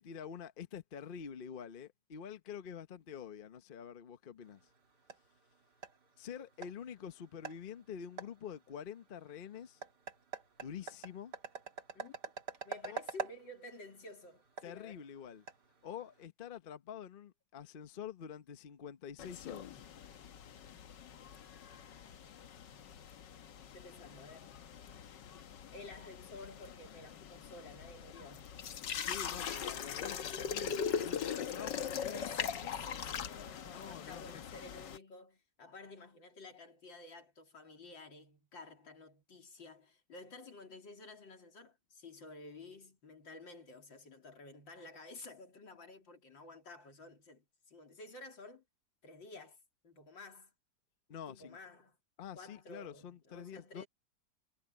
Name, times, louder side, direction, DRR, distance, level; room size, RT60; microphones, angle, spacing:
voice 1, 0.0-4.6 6.2-9.8 10.6-11.3 12.8-13.0 14.6-15.5 15.8-19.8 29.0-32.3 33.7-34.4 51.1-51.6 52.2-53.8, left 8 dB, 40° left, 0.8 m, -47 dB
sound 1, 4.4-16.3, right 5 dB, 65° right, 2.8 m, -48 dB
voice 2, 12.6-15.1 23.7-24.6 25.7-28.6 31.6-48.6 49.0-49.6 49.8-50.5 51.3-52.0 52.3-53.9, left 2 dB, 90° left, 4.0 m, -52 dB
sound 2, 19.2-35.0, left 8 dB, 70° left, 1.7 m, -41 dB
omnidirectional pair, 2.0 m